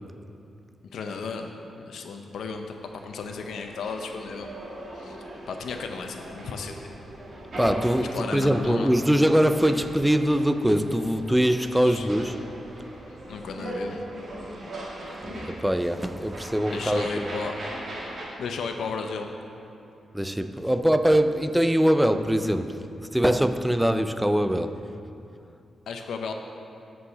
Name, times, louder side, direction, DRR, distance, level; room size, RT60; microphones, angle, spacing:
voice 1, 0.9-4.5 4.9-5.2 5.5-6.9 8.1-8.9 11.8-12.1 13.3-14.0 16.7-17.5 18.4-19.3 25.9-26.3, left 5 dB, 85° left, 4 dB, 0.6 m, -34 dB
sound 1, 2.7-18.3, right 1 dB, 45° right, 1.8 m, -39 dB
voice 2, 7.6-12.5 15.4-17.3 20.1-22.9 23.1-25.0, equal, 5° right, 9 dB, 0.3 m, -23 dB
8.6 x 4.7 x 7.0 m, 2.7 s
wide cardioid pair, 165°, 0 cm